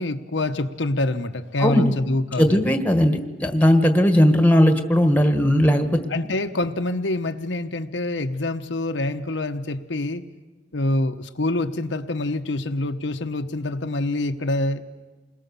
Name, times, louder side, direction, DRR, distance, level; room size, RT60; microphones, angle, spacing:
voice 1, 0.0-2.6 6.1-10.2 10.7-14.8, left 2 dB, 80° left, 6 dB, 1.0 m, -26 dB
voice 2, 2.4-6.0, equal, 10° left, 7 dB, 1.4 m, -18 dB
28.5 x 21.0 x 7.0 m, 1.2 s
head